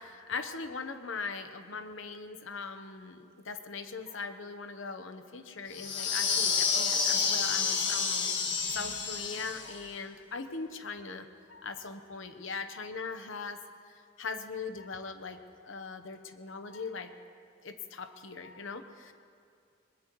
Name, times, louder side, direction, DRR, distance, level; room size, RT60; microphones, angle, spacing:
voice 1, 0.0-8.3 8.7-13.6 14.2-17.1 17.6-19.1, left 4 dB, 80° left, 8 dB, 1.0 m, -40 dB
sound 1, 5.7-9.8, left 5 dB, 60° left, 1.7 m, -29 dB
22.0 x 20.0 x 3.1 m, 2.3 s
head